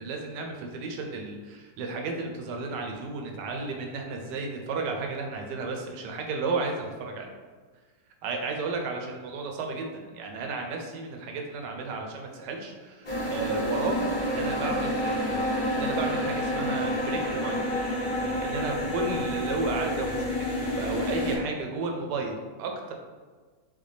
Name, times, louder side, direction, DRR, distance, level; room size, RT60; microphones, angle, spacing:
voice 1, 0.0-7.3 8.2-15.5 15.7-17.7 18.4-22.9, right 3 dB, 70° right, 2 dB, 1.2 m, -33 dB
sound 1, 13.0-21.4, left 1 dB, 80° left, 0.4 m, -29 dB
4.0 x 3.6 x 3.3 m, 1.4 s
omnidirectional pair, 2.1 m